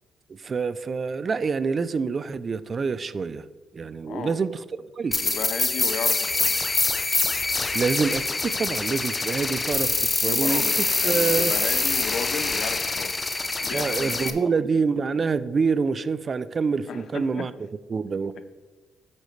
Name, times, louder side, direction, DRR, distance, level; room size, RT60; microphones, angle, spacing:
voice 1, 0.3-3.5 3.7-4.6 4.9-5.3 7.7-11.5 13.7-17.5 17.9-18.4, right 5 dB, 40° right, 15 dB, 0.4 m, -26 dB
voice 2, 4.1-4.4 5.2-6.5 9.9-13.1 13.6-14.6 16.9-17.5, left 6 dB, 65° left, 11 dB, 0.6 m, -34 dB
sound 1, 5.1-14.3, left 3 dB, 25° left, 0.7 m, -25 dB
8.5 x 8.1 x 3.2 m, 1.2 s
cardioid pair, 90°, 0 cm